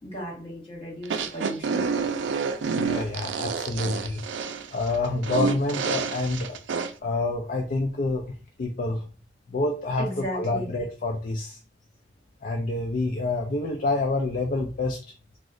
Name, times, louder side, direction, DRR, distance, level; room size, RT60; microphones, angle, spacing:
voice 1, 0.0-1.8 10.0-10.7, equal, 35° left, -3 dB, 1.7 m, -35 dB
sound 1, 1.0-6.9, right 5 dB, 90° right, 0.4 m, -28 dB
voice 2, 2.8-4.2 4.7-6.6 7.0-9.1 9.5-11.6 12.4-15.0, left 2 dB, 50° left, 2 dB, 0.4 m, -27 dB
2.9 x 2.0 x 3.7 m, 0.38 s
head